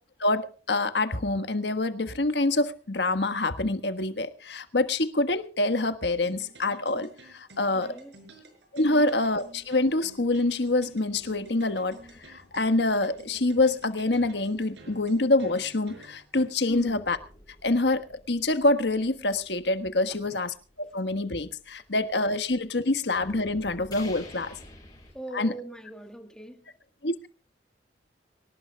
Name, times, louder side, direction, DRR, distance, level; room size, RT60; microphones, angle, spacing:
voice 1, 0.2-7.9 8.7-12.0 12.3-17.2 17.6-24.5 25.3-25.5 27.0-27.3, left 2 dB, 70° left, 10 dB, 1.5 m, -26 dB
sound 1, 6.2-16.4, right 2 dB, 75° right, 5.5 m, -51 dB
voice 2, 7.7-8.2 8.9-9.1 16.7-17.0 20.1-20.4 25.1-26.7, right 1 dB, 5° left, 5 dB, 2.2 m, -41 dB
sound 2, 8.9-15.9 16.7-22.5 22.9-25.1, left 1 dB, 25° left, 7.1 m, -52 dB
24.0 x 18.5 x 2.3 m, 0.38 s
head